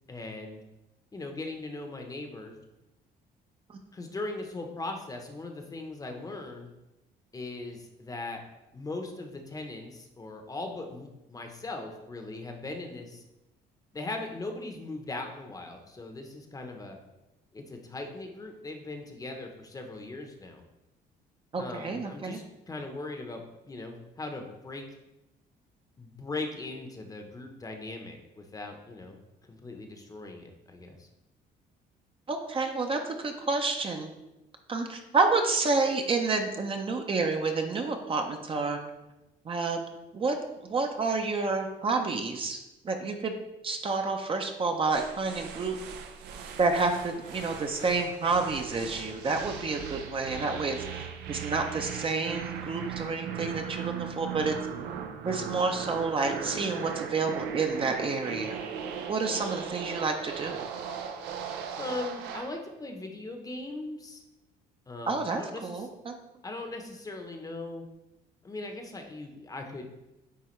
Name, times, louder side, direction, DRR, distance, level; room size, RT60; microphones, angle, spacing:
voice 1, 0.1-0.6 1.1-2.5 3.9-6.7 7.3-8.4 8.7-13.2 13.9-17.0 17.5-20.6 21.6-24.8 26.0-29.2 29.5-31.1 61.8-64.2 64.9-65.9 66.4-67.8 68.4-69.8, left 2 dB, 20° left, 4 dB, 0.8 m, -39 dB
voice 2, 21.5-22.4 32.3-34.1 34.7-38.8 39.5-39.8 40.1-42.6 42.8-43.3 43.6-45.8 46.6-54.5 55.2-58.6 59.1-60.6 65.1-66.1, right 3 dB, 30° right, 4 dB, 0.6 m, -29 dB
sound 1, 44.9-62.6, right 7 dB, 85° right, 0.6 m, -38 dB
9.4 x 3.4 x 3.1 m, 0.97 s
cardioid pair, 110°, 17 cm